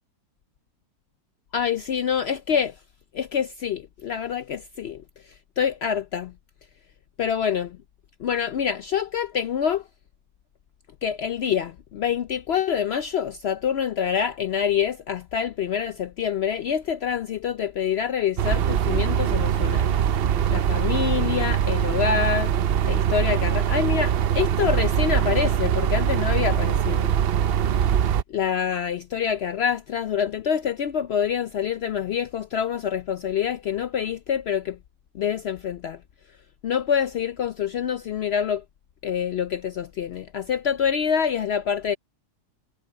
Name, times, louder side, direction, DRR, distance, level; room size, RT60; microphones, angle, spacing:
voice 1, 1.5-2.8 3.1-5.0 5.6-6.3 7.2-7.8 8.2-9.8 11.0-20.0 20.5-22.5 22.9-27.1 28.3-34.8 35.1-36.0 36.6-38.6 39.0-41.9, left 8 dB, 80° left, 0.5 m, -26 dB
sound 1, 18.4-28.2, right 9 dB, 70° right, 0.5 m, -22 dB
omnidirectional pair, 1.7 m